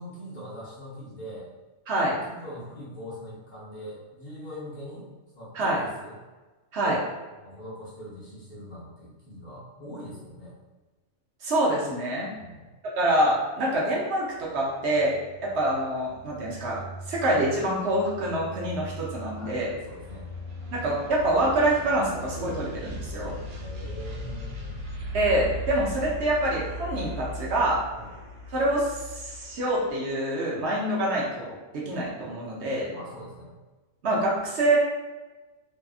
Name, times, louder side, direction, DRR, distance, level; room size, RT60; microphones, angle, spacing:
voice 1, 0.0-1.5 2.0-5.1 5.3-6.2 6.8-7.1 7.4-10.5 12.4-12.7 19.4-20.3 23.6-24.8 27.9-28.1 32.9-33.5, equal, 45° left, -9 dB, 0.7 m, -42 dB
voice 2, 1.9-2.2 5.5-5.8 6.7-7.0 11.4-12.3 13.0-19.7 20.7-23.4 25.1-27.8 28.5-32.9 34.0-34.8, right 1 dB, 65° right, -4 dB, 0.8 m, -26 dB
sound 1, 14.3-30.0, equal, 85° right, 1.1 m, -39 dB
2.7 x 2.4 x 2.3 m, 1.2 s
omnidirectional pair, 1.3 m